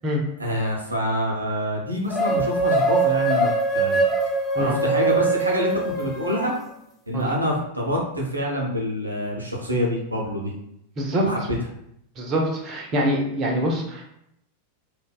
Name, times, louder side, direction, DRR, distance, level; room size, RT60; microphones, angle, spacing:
voice 1, 0.4-4.0 4.4-6.5 7.1-10.5 11.2-11.4, equal, 85° right, -2 dB, 0.6 m, -26 dB
sound 1, 2.1-6.6, right 2 dB, 20° left, 0.3 m, -22 dB
voice 2, 11.0-11.3 12.2-14.0, equal, 30° right, 0 dB, 0.5 m, -24 dB
2.6 x 2.1 x 2.2 m, 0.76 s
figure-of-eight pair, 90°, 0 cm